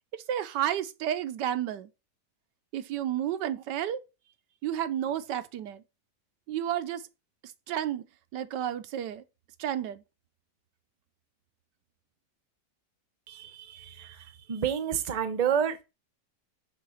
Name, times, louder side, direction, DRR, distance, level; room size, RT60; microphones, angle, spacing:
voice 1, 0.1-1.9 2.7-4.0 4.6-5.8 6.5-7.0 7.7-8.0 8.3-9.2 9.6-10.0, right 10 dB, 90° right, 1.3 m, -31 dB
voice 2, 13.3-15.8, right 8 dB, 40° right, 0.6 m, -30 dB
6.7 x 3.7 x 6.3 m
omnidirectional pair, 1.8 m